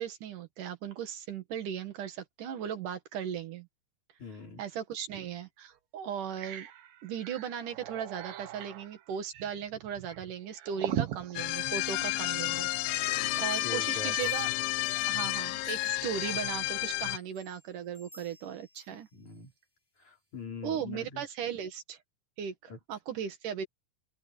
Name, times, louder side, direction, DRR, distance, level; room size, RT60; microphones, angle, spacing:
voice 1, 0.0-3.7 4.6-6.7 7.0-14.5 15.1-19.1 20.6-22.0 22.4-23.7, right 8 dB, 70° right, 3.2 m, -37 dB
voice 2, 4.2-4.6 12.5-12.6 12.9-14.3 18.9-19.5 20.0-21.2 22.7-22.8, left 4 dB, 60° left, 6.3 m, -44 dB
sound 1, 5.1-5.3 5.7-5.8 6.1-12.5, right 12 dB, 85° right, 3.1 m, -40 dB
sound 2, 11.4-17.2, left 18 dB, 80° left, 2.2 m, -31 dB
sound 3, 14.0-16.6 17.1-19.5 20.0-20.1, equal, 5° left, 4.5 m, -58 dB
omnidirectional pair, 3.8 m